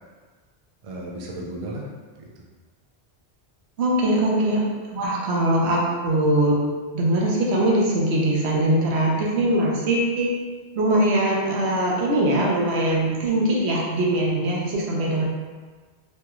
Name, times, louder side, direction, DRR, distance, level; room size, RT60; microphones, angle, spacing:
voice 1, 0.8-2.5 4.0-4.5, right 1 dB, 45° right, -2 dB, 0.4 m, -32 dB
voice 2, 3.8-4.6 4.9-6.6 6.9-10.3 10.8-15.2, right 1 dB, 85° right, -3 dB, 1.0 m, -21 dB
3.2 x 2.3 x 2.9 m, 1.4 s
omnidirectional pair, 1.1 m